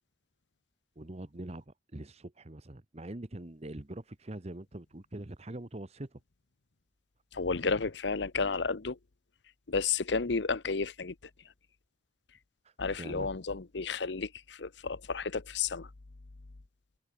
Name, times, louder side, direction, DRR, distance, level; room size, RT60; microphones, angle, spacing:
voice 1, 1.0-6.2 12.6-13.3, right 1 dB, 35° right, 1.1 m, -43 dB
voice 2, 7.3-9.0 9.7-11.1 12.8-15.9, left 4 dB, 70° left, 0.9 m, -32 dB
head